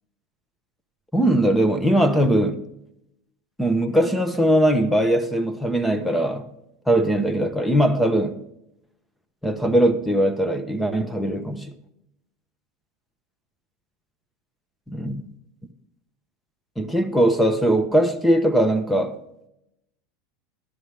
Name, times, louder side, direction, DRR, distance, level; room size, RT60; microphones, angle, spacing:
voice 1, 1.1-2.6 3.6-6.5 6.9-8.4 9.4-11.7 14.9-15.2 16.8-19.2, right 1 dB, 5° left, 1.2 m, -20 dB
12.5 x 11.0 x 3.4 m
supercardioid pair, 115°, 0 cm